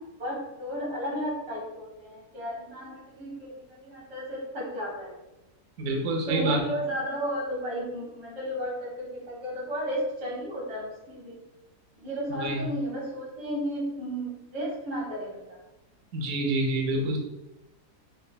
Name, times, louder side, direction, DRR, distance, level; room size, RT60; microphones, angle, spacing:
voice 1, 0.2-5.2 6.3-11.4 12.0-15.6, equal, 85° right, -6 dB, 2.1 m, -33 dB
voice 2, 5.8-6.6 12.3-12.6 16.1-17.2, right 2 dB, 60° right, 0 dB, 0.8 m, -27 dB
5.3 x 2.0 x 2.2 m, 0.99 s
omnidirectional pair, 1.7 m